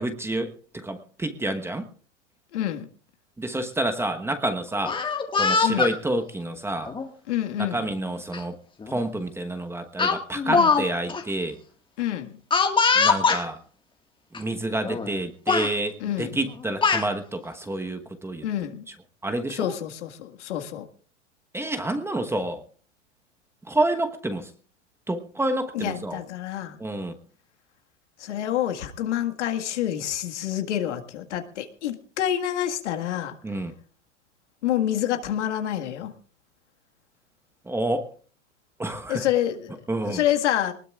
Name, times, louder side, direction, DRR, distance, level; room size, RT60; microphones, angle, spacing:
voice 1, 0.0-1.9 3.4-5.0 5.4-6.9 7.6-8.5 8.9-11.6 12.9-13.6 14.3-18.4 19.2-19.7 21.5-22.6 23.7-24.5 25.1-26.2 26.8-27.1 33.4-33.7 37.7-38.1 38.8-39.3 39.9-40.2, right 1 dB, 5° right, 7 dB, 1.2 m, -28 dB
voice 2, 2.5-2.9 5.6-5.9 7.3-7.9 10.4-10.7 12.0-12.3 16.0-16.4 18.4-18.8 19.5-20.9 25.7-26.8 28.2-33.4 34.6-36.1 39.1-39.8 40.1-40.7, left 11 dB, 70° left, 5 dB, 1.8 m, -27 dB
Speech, 4.8-5.9 6.9-7.1 8.3-8.4 8.8-9.0 10.0-10.8 11.1-11.2 12.5-13.4 14.3-14.4 14.8-15.2 15.5-15.7 16.5-17.1, left 5 dB, 15° left, 1.7 m, -22 dB
22.0 x 19.5 x 2.4 m, 0.39 s
hypercardioid pair, 115°, 36 cm